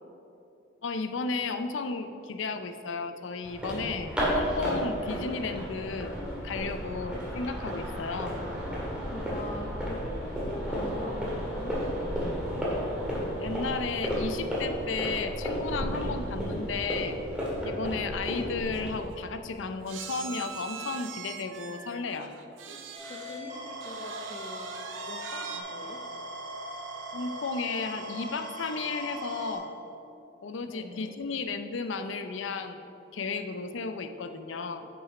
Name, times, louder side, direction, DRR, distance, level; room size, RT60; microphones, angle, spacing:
voice 1, 0.8-6.1 6.4-8.4 13.4-17.2 17.6-22.3 27.1-29.7 30.4-32.8 33.1-34.9, left 4 dB, 85° left, 8 dB, 0.5 m, -34 dB
sound 1, 3.4-19.0, equal, 5° right, 1.8 m, -32 dB
voice 2, 8.7-12.7 22.7-22.8 23.1-24.7 25.1-26.0 30.6-31.1, left 1 dB, 35° left, -1 dB, 0.6 m, -42 dB
sound 2, 18.4-18.5 18.7-18.9 19.9-23.4 23.8-25.6, right 6 dB, 85° right, 0.6 m, -42 dB
sound 3, 22.9-29.6, right 1 dB, 40° right, 1.5 m, -40 dB
7.4 x 6.2 x 4.9 m, 2.8 s
head